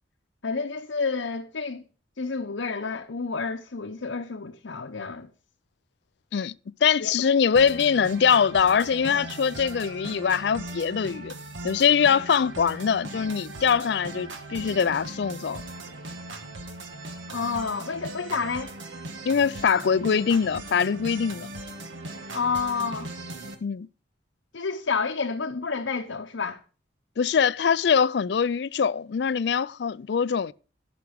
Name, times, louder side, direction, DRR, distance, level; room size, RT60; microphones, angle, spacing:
voice 1, 0.4-1.8 2.2-5.3 7.0-7.1 17.3-18.7 22.3-23.1 24.5-26.6, left 5 dB, 80° left, 0.8 m, -29 dB
voice 2, 6.8-11.3 11.6-15.6 19.3-21.5 23.6-23.9 27.2-30.5, left 6 dB, 65° left, 0.4 m, -23 dB
sound 1, 7.5-23.5, right 2 dB, 85° right, 1.7 m, -39 dB
12.5 x 6.0 x 5.1 m
head